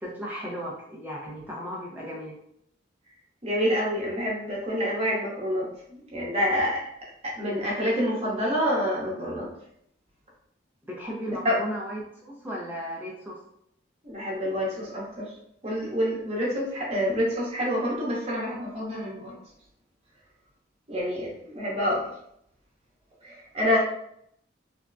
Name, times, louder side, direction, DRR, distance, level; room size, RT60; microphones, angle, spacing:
voice 1, 0.0-2.4 10.9-13.4, equal, 10° right, -4 dB, 0.5 m, -35 dB
voice 2, 3.4-6.9 7.2-9.5 11.4-11.5 14.0-15.3 15.6-19.4 20.9-22.1 23.2-23.8, equal, 35° right, -4 dB, 0.9 m, -27 dB
3.4 x 2.1 x 2.5 m, 0.72 s
head